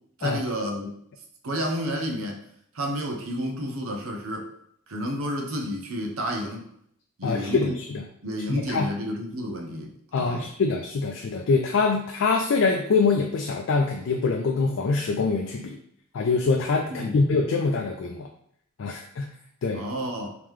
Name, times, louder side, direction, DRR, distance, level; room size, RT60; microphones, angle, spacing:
voice 1, 0.2-1.0 1.4-2.4 2.7-4.5 4.9-6.7 7.2-7.8 8.2-10.5 17.0-17.2 19.7-20.4, equal, 85° right, 2 dB, 0.7 m, -30 dB
voice 2, 7.2-8.1 8.5-8.9 10.1-15.8 16.1-18.3 18.8-19.3 19.6-19.9, left 4 dB, 65° left, 3 dB, 0.4 m, -24 dB
3.6 x 2.9 x 3.1 m, 0.68 s
head